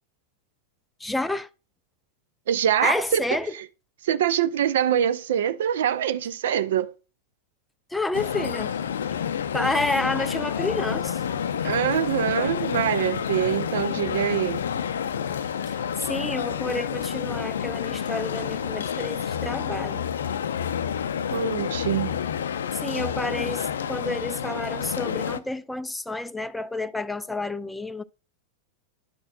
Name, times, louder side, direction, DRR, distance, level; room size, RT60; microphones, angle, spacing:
voice 1, 1.0-1.5 2.8-3.5 7.9-8.7 9.5-11.2 16.1-20.0 22.8-28.0, left 2 dB, 5° left, 0.4 m, -29 dB
voice 2, 2.5-3.2 3.5-3.7 4.0-6.9 11.6-14.6 21.3-22.2, right 10 dB, 60° right, 0.5 m, -24 dB
sound 1, 8.1-25.4, left 8 dB, 65° left, 0.4 m, -29 dB
11.0 x 6.2 x 2.4 m
figure-of-eight pair, 90°, 0 cm